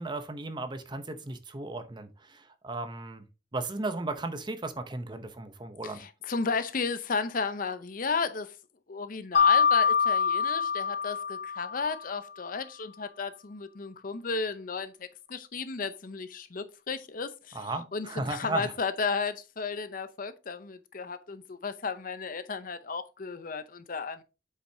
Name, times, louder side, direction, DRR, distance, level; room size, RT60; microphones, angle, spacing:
voice 1, 0.0-3.2 3.5-6.0 17.5-18.7, right 2 dB, 25° right, 0.7 m, -35 dB
voice 2, 5.8-8.5 8.9-24.2, left 4 dB, 45° left, 0.6 m, -34 dB
Mallet percussion, 9.3-12.1, left 6 dB, 70° left, 1.9 m, -25 dB
7.9 x 5.7 x 2.7 m
head